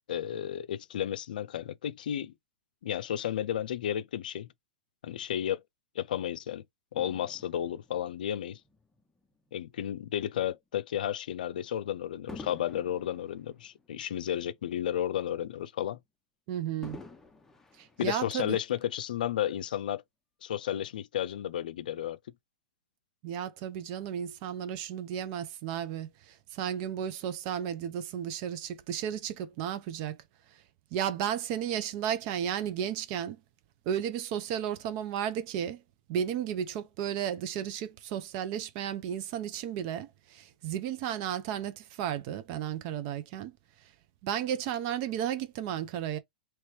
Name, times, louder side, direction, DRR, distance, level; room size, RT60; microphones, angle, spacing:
voice 1, 0.1-2.3 2.8-4.5 5.0-5.6 6.0-6.6 6.9-8.6 9.5-16.0 18.0-20.0 20.4-22.2, left 10 dB, 75° left, 0.4 m, -33 dB
Fireworks, 7.0-9.5 10.2-10.4 12.3-14.8 15.2-15.3 16.8-18.7 19.4-19.5, left 3 dB, 10° left, 0.8 m, -50 dB
voice 2, 16.5-17.0 17.8-18.6 23.2-30.2 30.9-33.4 33.9-35.8 36.1-43.5 44.2-46.2, right 9 dB, 50° right, 0.7 m, -33 dB
3.0 x 2.9 x 3.3 m
hypercardioid pair, 115°, 5 cm